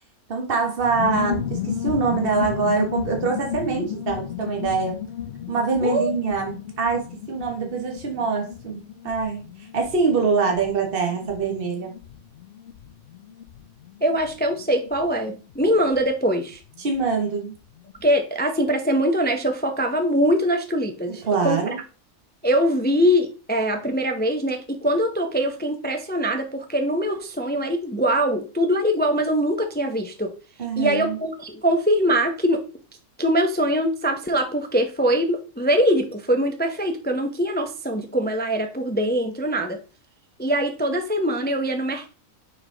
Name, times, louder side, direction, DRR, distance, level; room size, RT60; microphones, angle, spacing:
voice 1, 0.3-5.0 5.5-9.4 9.7-11.9 16.8-17.5 21.1-21.8 30.6-31.2, right 4 dB, 40° right, 2 dB, 1.5 m, -24 dB
sound 1, 0.8-17.1 17.3-17.4 17.6-18.1, left 9 dB, 60° left, 0.7 m, -34 dB
voice 2, 5.8-6.1 14.0-16.6 18.0-21.6 22.4-30.3 30.8-32.6 33.2-39.8 40.4-42.1, equal, 15° left, 5 dB, 0.4 m, -22 dB
5.4 x 4.6 x 3.8 m, 0.36 s
omnidirectional pair, 1.5 m